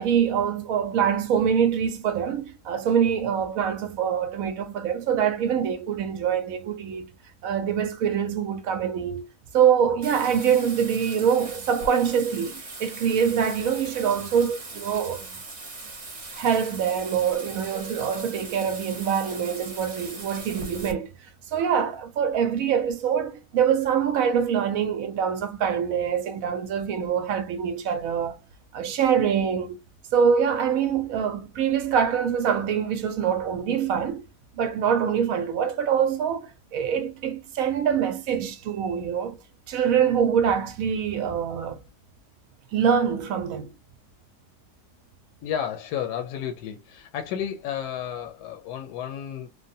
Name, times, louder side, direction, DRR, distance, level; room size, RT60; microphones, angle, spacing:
voice 1, 0.0-7.1 7.4-9.2 9.5-15.3 16.3-21.1 21.5-28.4 28.7-29.8 30.1-34.2 34.5-39.4 39.7-41.8 42.7-43.7, right 7 dB, 65° right, 0.9 m, -24 dB
Bathtub (filling or washing), 10.0-20.9, right 3 dB, 30° right, 0.9 m, -40 dB
voice 2, 45.4-49.5, left 9 dB, 80° left, 1.1 m, -32 dB
3.2 x 2.2 x 2.6 m
omnidirectional pair, 1.8 m